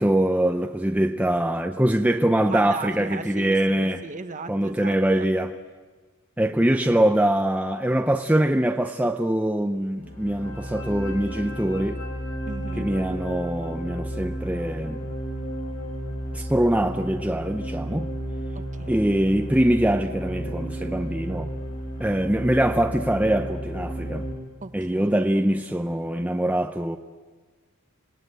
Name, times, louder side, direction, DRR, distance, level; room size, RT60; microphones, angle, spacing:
voice 1, 0.0-4.0 4.5-5.5 6.4-12.0 12.8-15.0 16.3-18.1 18.9-21.5 22.0-24.3 24.7-27.0, right 1 dB, 5° right, 0.6 m, -23 dB
voice 2, 2.5-5.3 12.5-12.9 18.5-19.1 24.6-25.1, right 3 dB, 35° right, 1.1 m, -37 dB
sound 1, 10.0-24.3, right 1 dB, 65° left, 5.3 m, -33 dB
27.0 x 19.0 x 7.9 m
head